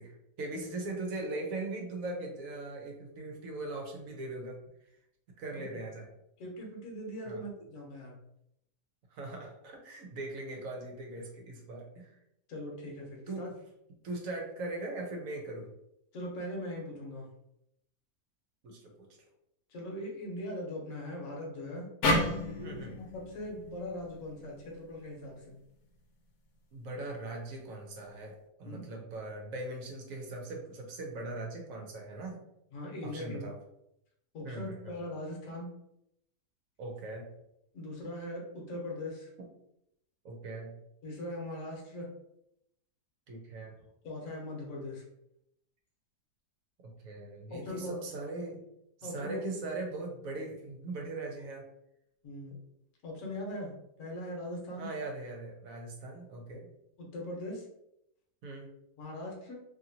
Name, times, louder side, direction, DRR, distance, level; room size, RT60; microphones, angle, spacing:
voice 1, 0.0-4.6 5.4-6.1 7.3-7.4 9.1-12.1 13.3-13.6 14.0-15.7 18.6-19.1 22.6-23.0 26.7-32.4 33.0-33.6 34.4-35.0 36.8-37.3 40.2-40.8 43.3-43.7 47.0-48.6 49.0-51.6 54.8-56.7 58.4-58.7, right 2 dB, 65° right, 1 dB, 1.0 m, -40 dB
voice 2, 6.4-8.2 12.5-13.5 16.1-17.3 19.7-21.9 22.4-25.6 28.6-28.8 32.7-33.4 34.3-35.7 37.7-39.3 41.0-42.1 44.0-45.0 47.5-48.0 49.0-49.4 52.2-52.5 53.0-53.7 54.0-54.9 57.0-57.7 59.0-59.6, left 1 dB, 55° left, -1 dB, 1.2 m, -40 dB
sound 1, 22.0-25.3, left 1 dB, 75° left, 1.1 m, -32 dB
2.8 x 2.7 x 2.7 m, 0.80 s
omnidirectional pair, 1.8 m